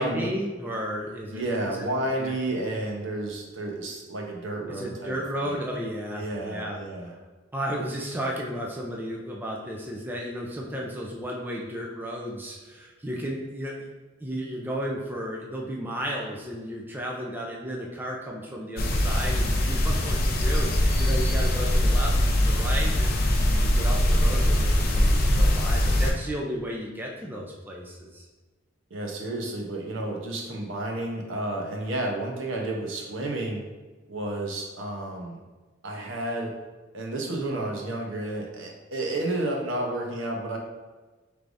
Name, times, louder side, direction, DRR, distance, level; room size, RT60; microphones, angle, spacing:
voice 1, 0.0-1.8 2.2-2.3 4.7-7.1 7.5-13.7 14.2-23.2 23.6-28.3, equal, 10° right, -2 dB, 0.4 m, -33 dB
voice 2, 1.3-5.1 5.4-5.6 6.1-7.1 28.9-33.6 34.1-35.4 35.8-36.6 36.9-40.6, right 1 dB, 70° right, 0 dB, 0.8 m, -31 dB
sound 1, 18.8-26.1, left 1 dB, 50° left, 0.6 m, -22 dB
4.7 x 3.3 x 2.6 m, 1.3 s
head